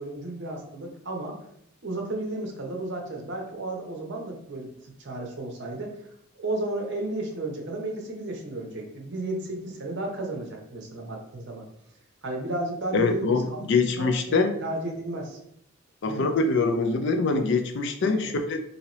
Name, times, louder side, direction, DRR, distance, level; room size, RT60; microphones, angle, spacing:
voice 1, 0.0-1.4 1.8-4.7 5.0-6.0 6.3-11.6 12.2-13.7 14.0-15.4 16.0-16.3 18.0-18.3, right 2 dB, 55° right, 1 dB, 0.7 m, -33 dB
voice 2, 12.9-14.6 16.0-18.6, left 3 dB, 55° left, 6 dB, 0.4 m, -24 dB
2.8 x 2.7 x 3.0 m, 0.71 s
head